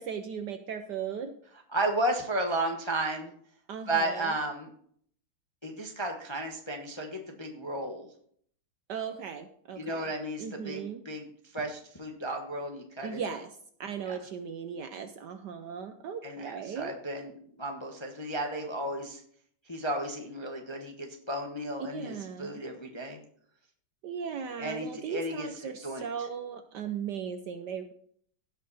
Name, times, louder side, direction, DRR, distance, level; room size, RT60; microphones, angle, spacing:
voice 1, 0.0-1.4 3.7-4.4 8.9-10.1 10.4-11.0 13.0-16.9 21.8-22.6 24.0-27.9, right 7 dB, 65° right, 8 dB, 1.1 m, -37 dB
voice 2, 1.7-3.3 3.9-4.7 5.6-8.1 9.8-11.3 11.5-13.2 14.1-14.2 16.2-19.2 19.7-23.2 24.6-25.5 25.8-26.0, right 1 dB, 20° left, 2 dB, 0.7 m, -33 dB
16.5 x 5.6 x 4.1 m, 0.62 s
omnidirectional pair, 2.4 m